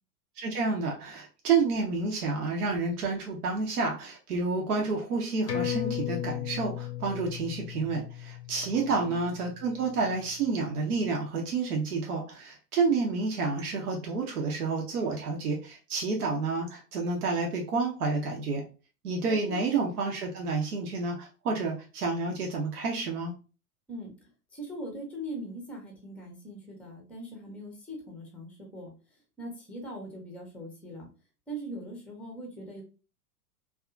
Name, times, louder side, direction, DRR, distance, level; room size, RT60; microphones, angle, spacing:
voice 1, 0.4-18.6 19.0-23.3, right 4 dB, 70° right, 0 dB, 0.8 m, -29 dB
sound 1, 5.5-10.4 10.8-10.9, left 11 dB, 80° left, 0.7 m, -36 dB
voice 2, 8.7-9.2 19.5-19.6 23.9-24.1 24.5-28.9 29.4-31.1 31.5-32.8, right 1 dB, 5° left, 1 dB, 0.6 m, -41 dB
2.7 x 2.3 x 2.4 m, 0.34 s
figure-of-eight pair, 95°, 48 cm